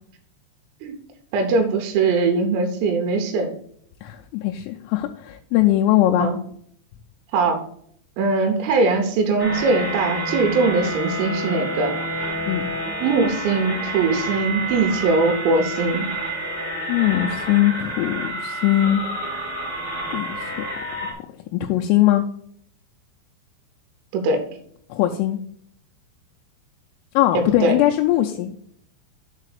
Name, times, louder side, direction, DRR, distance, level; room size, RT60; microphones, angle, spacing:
voice 1, 1.3-3.5 6.2-6.4 7.3-7.6 8.2-11.9 13.0-16.1 24.1-24.4 27.3-27.8, right 3 dB, 85° right, 4 dB, 3.7 m, -21 dB
voice 2, 4.0-6.3 12.5-12.7 16.9-19.0 20.1-20.6 21.1-21.2 21.5-22.2 24.9-25.4 27.2-28.6, left 14 dB, 85° left, 2 dB, 3.1 m, -20 dB
sound 1, 9.4-21.1, right 1 dB, 50° left, 1.1 m, -29 dB
7.6 x 4.0 x 6.5 m, 0.64 s
omnidirectional pair, 5.9 m